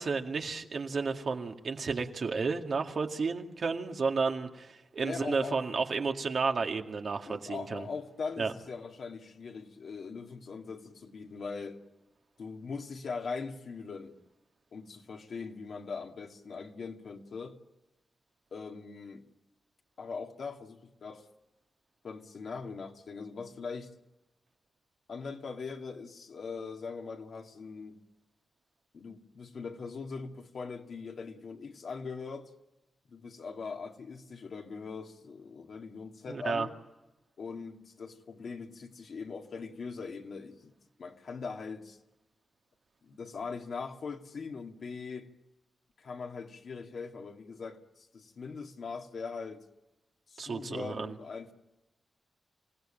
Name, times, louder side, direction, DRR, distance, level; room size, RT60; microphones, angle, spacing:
voice 1, 0.0-7.9 8.4-8.5 36.3-36.7 50.4-51.1, right 4 dB, 55° right, 2.1 m, -32 dB
voice 2, 5.0-5.6 7.3-11.8 12.4-14.2 14.7-17.6 18.5-19.3 20.0-21.3 22.0-23.9 25.1-28.0 28.9-32.5 33.1-36.7 37.4-42.0 43.0-45.3 46.0-49.6 50.3-51.5, left 5 dB, 65° left, 2.3 m, -41 dB
27.0 x 17.5 x 8.9 m
cardioid pair, 95°, 0 cm